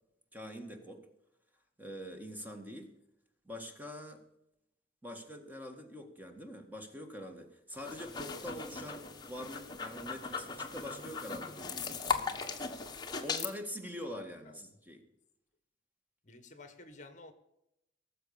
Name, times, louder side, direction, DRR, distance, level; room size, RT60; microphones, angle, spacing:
voice 1, 0.3-1.0 1.8-2.9 3.5-4.2 5.0-12.4 13.2-15.0, equal, 10° right, 4 dB, 1.8 m, -44 dB
sound 1, 7.7-13.5, left 5 dB, 25° left, 1.4 m, -38 dB
voice 2, 16.2-17.3, left 2 dB, 45° left, 10 dB, 1.5 m, -52 dB
18.5 x 7.5 x 7.0 m, 0.82 s
head